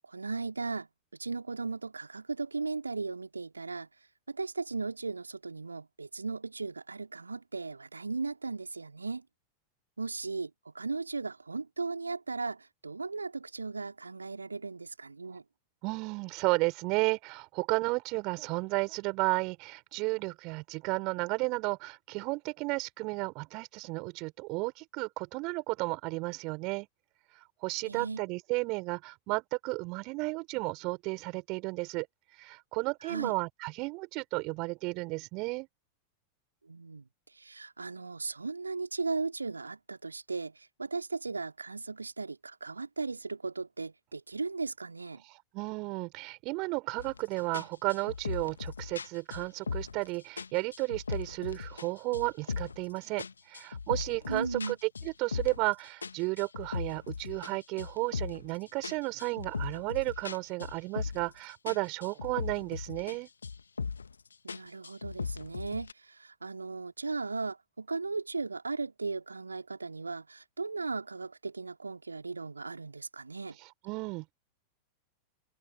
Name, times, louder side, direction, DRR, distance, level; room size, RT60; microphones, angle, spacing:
voice 1, 0.1-3.9 4.3-9.2 10.0-15.4 27.8-28.2 33.0-33.3 36.6-37.0 37.3-45.2 54.3-54.8 64.4-73.6, right 4 dB, 80° right, 2.9 m, -37 dB
voice 2, 15.8-26.9 27.6-32.1 32.4-35.7 45.5-54.8 55.0-63.3 73.9-74.3, right 26 dB, 40° right, 5.7 m, -33 dB
sound 1, 47.0-47.2 47.5-50.1 50.4-51.9 52.1-52.9 53.2-55.7 56.0-58.5 58.8-61.4 61.7-63.2 63.4-64.1 64.5-65.9, left 5 dB, 75° left, 1.8 m, -38 dB
figure-of-eight pair, 90°, 0 cm